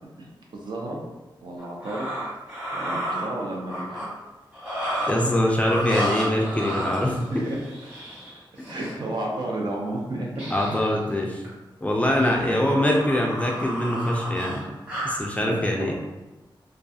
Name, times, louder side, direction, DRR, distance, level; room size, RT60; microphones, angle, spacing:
voice 1, 0.5-1.0 1.4-2.1 2.7-4.0 6.8-7.0 7.3-7.6 8.7-10.5 12.3-12.7 15.4-15.9, right 1 dB, 60° right, -2 dB, 0.5 m, -32 dB
sound 1, 1.6-4.1 4.5-5.3 5.6-8.9 10.3-10.9 11.2-11.5 12.0-15.2, equal, 15° right, 1.0 m, -32 dB
voice 2, 5.1-7.5 10.5-11.4 11.8-14.6 15.0-15.9, left 1 dB, 15° left, -1 dB, 0.3 m, -23 dB
2.3 x 2.3 x 2.6 m, 1.1 s
wide cardioid pair, 105°, 9 cm